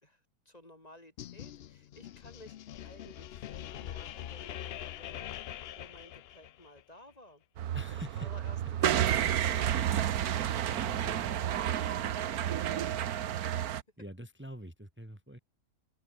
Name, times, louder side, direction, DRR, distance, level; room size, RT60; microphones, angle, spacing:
voice 1, 0.0-5.3 5.8-7.4 8.2-13.5, left 1 dB, 25° left, 3.5 m, -55 dB
sound 1, 1.2-6.8, left 11 dB, 65° left, 0.6 m, -43 dB
sound 2, 7.6-13.8, right 10 dB, 75° right, 1.4 m, -31 dB
voice 2, 7.7-8.3 8.8-8.9 10.6-11.3 14.0-15.4, equal, 5° right, 2.3 m, -46 dB
open air
omnidirectional pair, 1.6 m